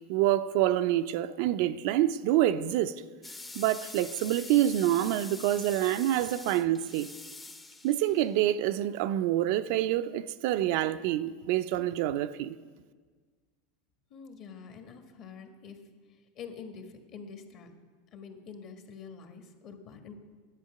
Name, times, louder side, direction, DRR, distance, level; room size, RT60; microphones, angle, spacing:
voice 1, 0.1-2.9 3.6-7.1 7.8-12.6, right 13 dB, 60° right, 0.4 m, -27 dB
sound 1, 3.2-8.3, left 2 dB, 15° left, 0.6 m, -45 dB
voice 2, 14.1-15.8 16.1-17.7 18.1-20.1, left 6 dB, 45° left, 1.4 m, -46 dB
10.5 x 8.2 x 5.7 m
supercardioid pair, 135°, 0 cm